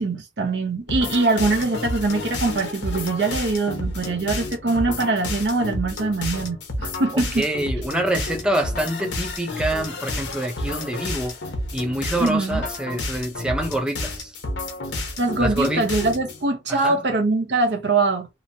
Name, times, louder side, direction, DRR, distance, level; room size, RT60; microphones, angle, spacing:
voice 1, 0.0-7.5 12.2-12.6 15.2-18.3, right 3 dB, 70° right, 0.8 m, -23 dB
sound 1, 0.9-16.4, left 2 dB, 90° left, 0.8 m, -30 dB
voice 2, 7.1-11.3 11.7-14.3 15.4-15.8 16.7-17.0, right 1 dB, 5° right, 0.6 m, -26 dB
2.9 x 2.1 x 2.6 m
head